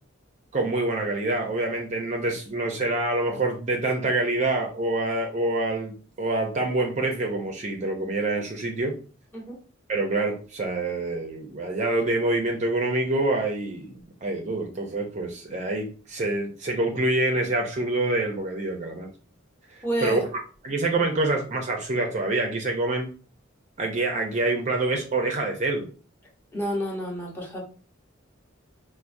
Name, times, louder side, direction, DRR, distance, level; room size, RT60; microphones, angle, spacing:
voice 1, 0.5-9.0 9.9-19.1 20.0-20.2 20.6-23.1 23.8-25.9, right 2 dB, 35° right, 2 dB, 0.5 m, -26 dB
voice 2, 19.8-20.2 26.5-27.6, equal, 10° left, -3 dB, 0.9 m, -29 dB
4.4 x 2.1 x 2.5 m, 0.38 s
head